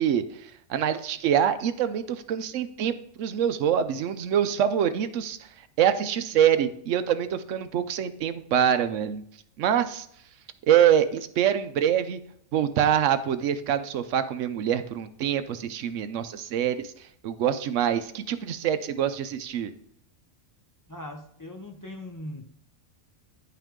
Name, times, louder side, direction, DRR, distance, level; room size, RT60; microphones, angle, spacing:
voice 1, 0.0-5.4 5.8-9.2 9.6-10.1 10.7-12.2 12.5-16.9 17.2-19.7, right 9 dB, 65° right, 11 dB, 0.9 m, -25 dB
voice 2, 20.9-22.6, left 1 dB, 30° left, 2 dB, 0.3 m, -40 dB
9.9 x 5.7 x 3.7 m, 0.68 s
omnidirectional pair, 1.5 m